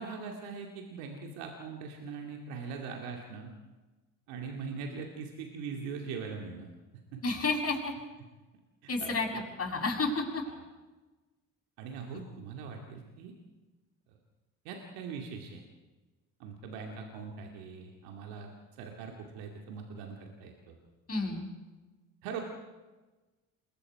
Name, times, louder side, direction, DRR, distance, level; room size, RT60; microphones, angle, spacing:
voice 1, 0.0-3.5 4.3-6.7 7.1-7.2 9.0-9.1 11.8-13.3 14.6-15.6 16.4-18.5 18.8-20.8 22.2-22.4, right 5 dB, 80° right, 2 dB, 2.4 m, -41 dB
voice 2, 7.2-7.9 8.9-9.3 9.6-10.4 21.1-21.4, left 3 dB, 40° left, 1 dB, 6.9 m, -30 dB
28.0 x 21.5 x 4.8 m, 1.2 s
hypercardioid pair, 55°, 37 cm